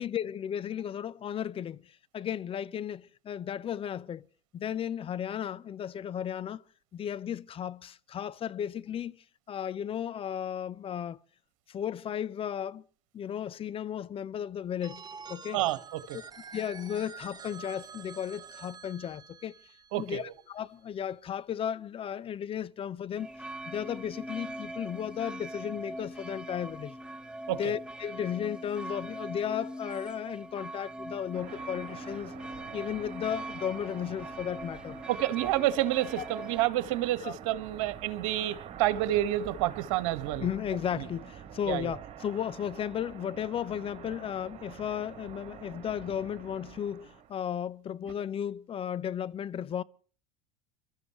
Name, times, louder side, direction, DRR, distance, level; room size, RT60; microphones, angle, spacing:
voice 1, 0.0-4.3 4.5-6.6 6.9-11.2 11.7-12.8 13.1-15.0 15.3-15.6 16.1-16.2 16.5-19.6 20.0-23.3 23.7-27.0 27.6-32.3 32.7-35.0 36.2-36.3 37.2-37.3 40.4-49.8, left 9 dB, 35° left, 0.8 m, -35 dB
Telephone, 14.8-20.6, right 6 dB, 25° right, 1.3 m, -48 dB
voice 2, 15.5-16.2 19.9-20.3 27.5-27.7 35.1-40.5 40.9-41.1 41.7-42.0 48.1-48.2, right 14 dB, 65° right, 1.7 m, -29 dB
sound 1, 23.2-36.7, right 1 dB, 5° right, 1.2 m, -42 dB
sound 2, 31.3-47.3, right 9 dB, 40° right, 3.2 m, -46 dB
30.0 x 13.5 x 3.2 m
hypercardioid pair, 80°, 17 cm